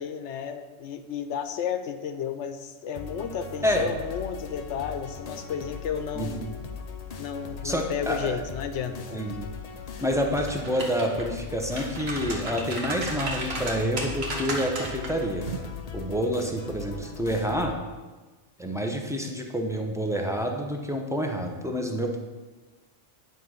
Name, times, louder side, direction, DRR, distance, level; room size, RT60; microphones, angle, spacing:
voice 1, 0.0-6.5 7.2-9.2, left 7 dB, 70° left, 9 dB, 0.9 m, -33 dB
sound 1, 3.0-17.7, left 5 dB, 45° left, 0.6 m, -39 dB
voice 2, 6.1-6.5 7.6-8.4 9.1-9.5 10.0-15.5 15.9-17.7 18.6-22.2, equal, 5° right, 2 dB, 0.7 m, -28 dB
sound 2, 10.3-11.2 11.6-15.1 15.5-15.7, right 2 dB, 60° right, 1.5 m, -34 dB
9.5 x 4.3 x 6.3 m, 1.3 s
omnidirectional pair, 1.2 m